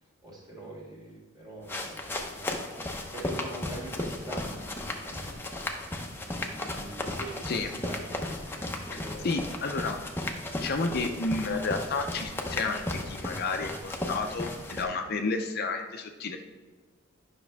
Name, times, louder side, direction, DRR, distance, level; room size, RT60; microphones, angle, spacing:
voice 1, 0.2-2.0 2.3-9.5, right 1 dB, 20° right, -4 dB, 2.2 m, -44 dB
sound 1, 1.6-14.8, left 1 dB, 10° left, 0.7 m, -35 dB
voice 2, 9.2-10.0 10.6-16.4, left 3 dB, 50° left, 5 dB, 0.6 m, -31 dB
10.5 x 6.0 x 3.4 m, 1.3 s
head